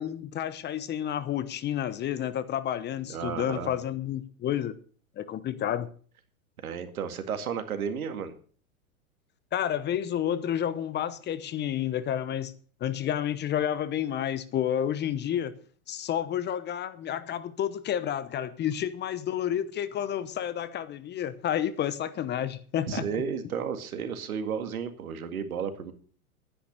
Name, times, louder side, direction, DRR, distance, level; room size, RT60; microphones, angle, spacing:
voice 1, 0.0-4.8 5.2-5.9 9.5-12.5 12.8-15.6 15.9-23.0, left 10 dB, 25° left, 0.9 m, -30 dB
voice 2, 3.1-3.7 6.6-8.3 22.9-25.9, right 7 dB, 75° right, 2.2 m, -33 dB
11.5 x 10.0 x 6.5 m
hypercardioid pair, 105°, 43 cm